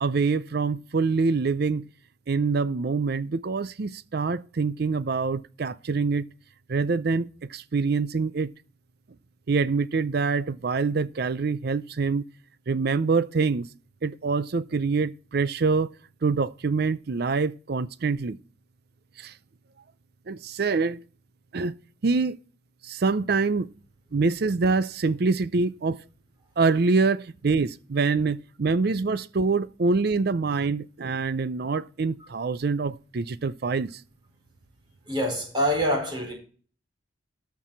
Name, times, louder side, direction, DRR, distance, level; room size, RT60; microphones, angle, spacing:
voice 1, 0.0-1.8 2.3-6.2 6.7-8.5 9.5-12.2 12.7-13.7 14.0-15.9 16.2-18.4 19.2-19.3 20.3-21.0 21.5-21.7 22.0-22.4 22.8-23.7 24.1-26.0 26.6-34.0, right 4 dB, 50° right, 0.5 m, -25 dB
voice 2, 35.1-36.3, equal, 25° right, 4.2 m, -25 dB
13.5 x 4.7 x 6.9 m
head